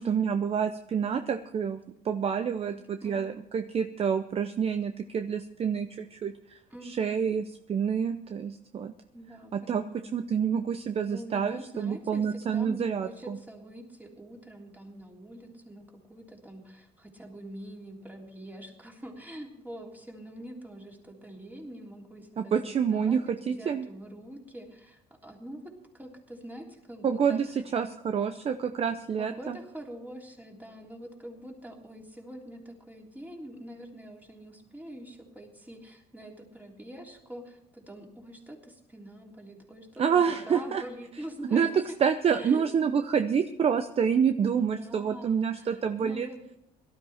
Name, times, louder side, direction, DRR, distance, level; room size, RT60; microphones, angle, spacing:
voice 1, 0.0-6.3 6.8-7.4 7.7-8.9 9.5-9.8 10.1-13.4 22.4-23.9 27.0-27.5 27.7-29.6 40.0-40.8 41.5-41.7 42.0-46.3, right 7 dB, 35° right, 9 dB, 0.7 m, -28 dB
voice 2, 2.4-3.4 6.7-7.3 9.1-10.1 11.1-27.4 29.2-42.0 42.3-42.6 44.5-46.6, right 1 dB, 10° right, 0 dB, 3.3 m, -45 dB
18.0 x 12.5 x 4.3 m, 0.78 s
cardioid pair, 110°, 17 cm